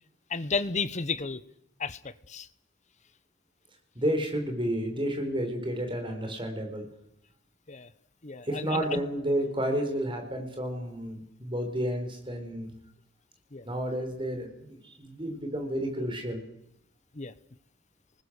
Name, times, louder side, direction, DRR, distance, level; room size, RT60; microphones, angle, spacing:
voice 1, 0.3-1.4 1.8-2.5 7.7-7.9 8.2-9.0 13.5-13.7 17.1-17.3, left 4 dB, 35° left, 1.0 m, -33 dB
voice 2, 3.9-6.9 8.4-12.7 13.6-16.4, right 1 dB, 25° right, 4.5 m, -31 dB
27.0 x 20.0 x 6.6 m
head